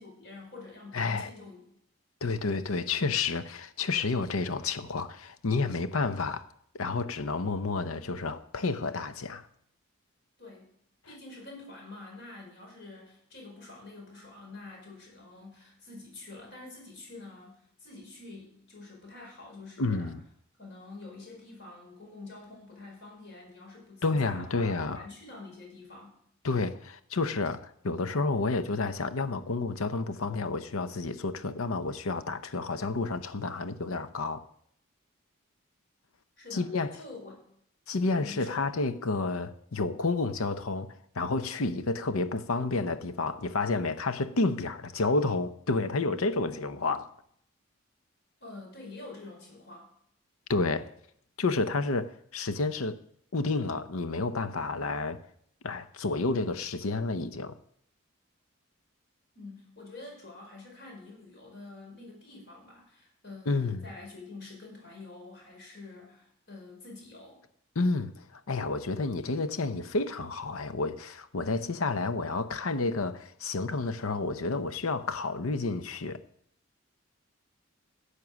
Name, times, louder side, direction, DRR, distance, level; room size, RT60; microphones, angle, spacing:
voice 1, 0.0-1.6 10.4-10.7 11.0-20.1 20.6-26.2 36.4-37.4 38.1-38.7 48.4-49.9 59.3-67.4, left 3 dB, 55° left, 5.2 m, -47 dB
voice 2, 0.9-1.3 2.2-6.4 6.7-9.5 19.8-20.2 24.0-25.1 26.4-34.4 36.5-36.9 37.9-47.1 50.5-50.9 51.4-53.0 53.3-55.2 55.6-57.6 63.5-63.8 67.7-76.2, left 3 dB, 90° left, 0.8 m, -30 dB
11.0 x 8.3 x 6.3 m
head